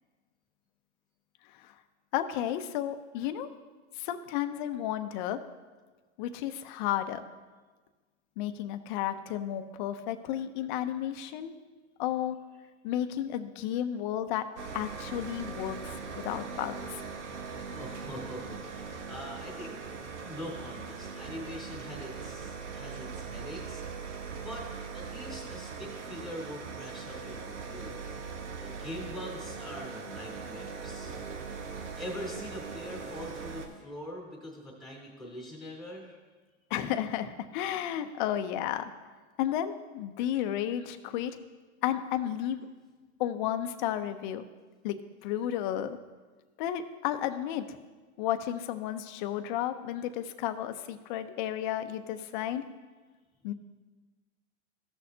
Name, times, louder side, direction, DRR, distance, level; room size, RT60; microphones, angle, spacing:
voice 1, 2.1-3.5 4.0-5.4 6.2-7.2 8.4-11.6 12.0-12.4 12.8-14.5 14.7-17.0 36.7-38.9 39.4-41.4 41.8-42.7 43.2-44.5 44.8-46.0 46.6-47.8 48.2-52.6 53.4-53.5, left 11 dB, 40° left, 9 dB, 0.7 m, -32 dB
sound 1, 14.6-33.7, right 5 dB, 70° right, 1.3 m, -40 dB
voice 2, 17.7-19.8 20.2-23.8 24.4-24.7 24.9-28.1 28.6-31.1 32.0-36.2, left 1 dB, ahead, -3 dB, 3.0 m, -43 dB
15.5 x 6.4 x 2.8 m, 1.3 s
hypercardioid pair, 140°, 36 cm